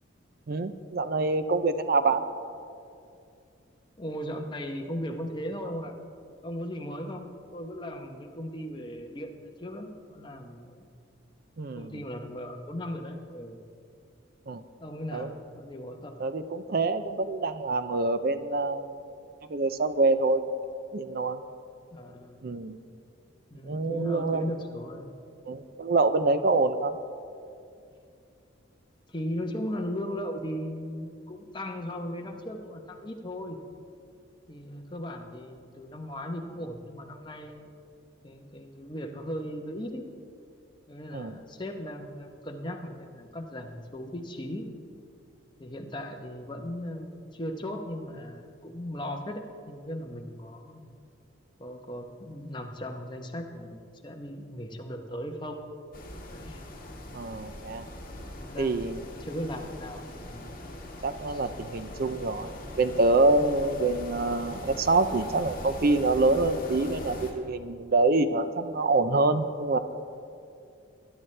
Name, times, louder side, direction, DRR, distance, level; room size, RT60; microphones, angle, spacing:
voice 1, 0.5-2.2 11.6-11.9 14.5-14.6 15.1-15.3 16.2-18.9 19.5-20.6 20.9-21.4 22.4-22.8 23.7-24.5 25.5-26.9 41.1-41.3 57.1-57.8 58.6-59.0 61.0-69.8, right 3 dB, 45° right, 11 dB, 0.4 m, -26 dB
voice 2, 4.0-5.9 6.4-10.9 11.7-13.6 14.8-16.2 21.9-22.4 23.5-25.2 29.1-33.6 34.5-37.7 38.2-40.1 40.9-44.7 45.6-50.8 51.6-55.6 56.3-56.6 58.2-60.5 61.3-61.5, equal, 20° left, 3 dB, 0.9 m, -37 dB
sound 1, 55.9-67.3, left 1 dB, 40° left, 1.9 m, -41 dB
20.5 x 11.0 x 3.3 m, 2.4 s
head